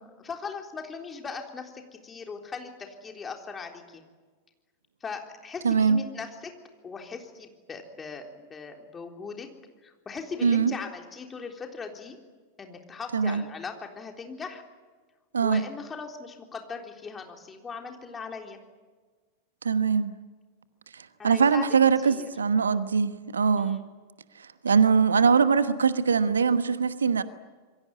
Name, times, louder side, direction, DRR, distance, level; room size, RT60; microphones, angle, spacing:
voice 1, 0.2-4.0 5.0-6.5 6.8-9.5 9.8-12.2 12.6-14.6 15.4-18.6 21.2-21.7 22.0-22.3 23.6-23.8, left 5 dB, 20° left, 3.7 m, -39 dB
voice 2, 5.6-6.0 10.4-10.7 13.1-13.4 15.3-15.6 19.6-20.1 20.9-23.8 24.4-27.2, right 6 dB, 70° right, 1.1 m, -22 dB
27.0 x 23.0 x 9.5 m
figure-of-eight pair, 90°, 0 cm